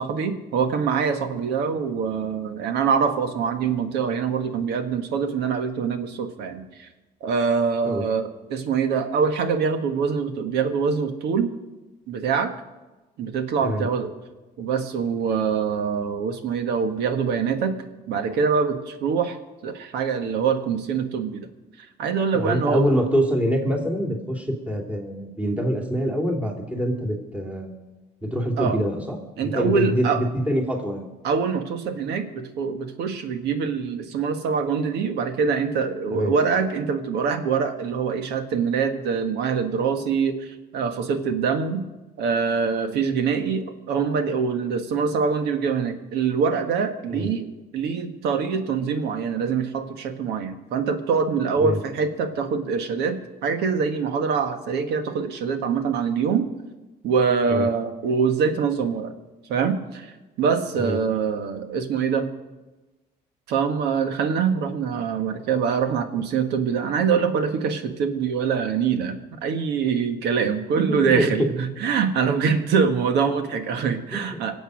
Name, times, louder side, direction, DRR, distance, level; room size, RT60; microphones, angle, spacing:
voice 1, 0.0-6.9 7.2-11.5 12.1-12.5 13.2-14.1 14.6-17.7 18.1-19.4 19.6-21.5 21.8-22.8 28.6-28.8 29.4-30.2 31.2-41.8 42.2-47.5 47.7-56.5 57.0-59.1 59.5-62.3 63.5-74.5, right 6 dB, 80° right, 8 dB, 1.6 m, -24 dB
voice 2, 22.3-27.7 28.2-31.0 36.1-36.3 47.1-47.3 51.6-51.8 57.5-57.6 60.8-61.0 70.9-71.5 74.1-74.2, equal, 5° right, -1 dB, 2.7 m, -25 dB
23.5 x 8.0 x 6.3 m, 1.1 s
cardioid pair, 110°, 17 cm